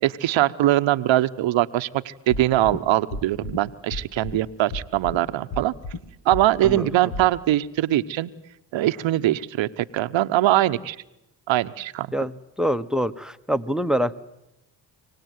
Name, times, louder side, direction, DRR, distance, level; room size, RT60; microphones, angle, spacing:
voice 1, 0.0-5.7 6.2-8.3 8.7-11.0 11.5-12.1, right 14 dB, 70° right, 12 dB, 1.0 m, -22 dB
sound 1, 2.3-2.8 3.1-3.6 3.9-4.4 4.7-5.2 5.5-6.0 6.3-6.8 7.1-7.2, left 3 dB, 55° left, 2.2 m, -32 dB
voice 2, 12.1-14.1, equal, ahead, 14 dB, 1.1 m, -25 dB
25.5 x 18.5 x 9.5 m, 0.88 s
supercardioid pair, 60°, 48 cm